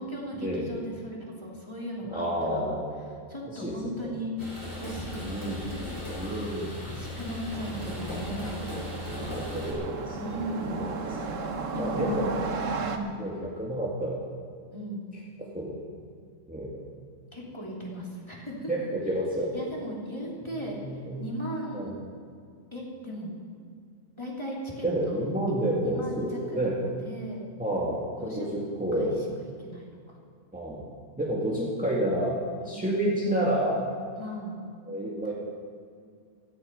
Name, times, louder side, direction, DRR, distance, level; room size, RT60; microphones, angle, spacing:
voice 1, 0.0-2.8 3.3-4.3 4.6-5.5 5.7-6.3 6.8-8.5 10.1-10.9 11.7-12.3 12.7-13.2 14.7-15.1 17.3-18.7 19.5-20.8 21.2-21.9 22.7-23.4 24.2-25.2 25.5-27.5 28.2-28.5 28.9-30.2 32.6-33.0 34.1-34.6 35.2-35.3, equal, 20° left, -4 dB, 3.1 m, -37 dB
voice 2, 2.1-2.9 3.6-3.7 4.0-4.1 5.2-5.7 6.2-6.7 9.1-10.7 11.8-12.3 13.2-14.2 15.5-15.7 16.5-16.7 18.7-19.7 20.5-21.2 21.7-21.9 24.8-26.7 27.6-29.2 30.5-30.8 31.2-32.4 32.7-33.8 34.9-35.3, right 1 dB, 5° right, -5 dB, 2.0 m, -29 dB
sound 1, 4.4-9.7, left 1 dB, 45° left, 5.6 m, -37 dB
sound 2, 7.5-13.0, right 4 dB, 60° right, 1.4 m, -35 dB
17.0 x 14.0 x 5.5 m, 2.2 s
omnidirectional pair, 1.5 m